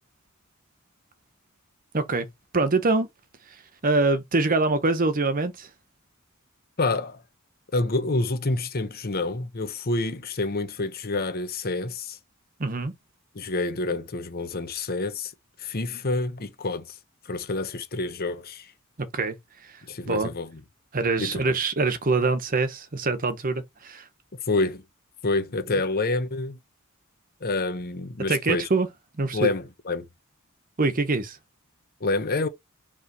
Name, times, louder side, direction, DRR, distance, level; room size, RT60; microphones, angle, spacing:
voice 1, 1.9-2.3 2.5-3.1 3.8-5.7 12.6-12.9 19.0-19.4 20.0-20.3 20.9-24.1 28.3-28.9 29.2-29.5 30.8-31.4, right 3 dB, 40° right, 0.9 m, -24 dB
voice 2, 6.8-7.2 7.7-12.2 13.3-15.3 15.6-17.0 17.2-18.7 19.9-20.6 21.2-21.4 24.4-24.8 25.2-26.6 27.4-28.7 29.3-30.1 32.0-32.5, left 3 dB, 45° left, 1.0 m, -28 dB
5.4 x 3.2 x 5.3 m
head